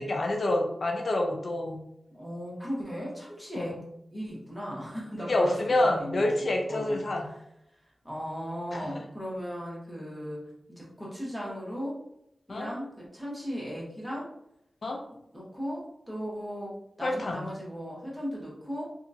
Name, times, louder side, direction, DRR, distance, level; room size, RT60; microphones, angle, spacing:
voice 1, 0.0-1.8 3.6-3.8 5.2-7.3 8.7-9.0 12.5-12.7 14.8-15.0 17.0-17.5, left 1 dB, 65° left, 2 dB, 0.3 m, -28 dB
voice 2, 2.1-3.8 4.1-6.3 6.7-7.0 8.0-12.0 12.5-14.3 15.1-18.8, equal, ahead, -6 dB, 1.2 m, -37 dB
2.8 x 2.3 x 2.7 m, 0.79 s
wide cardioid pair, 70°, 0 cm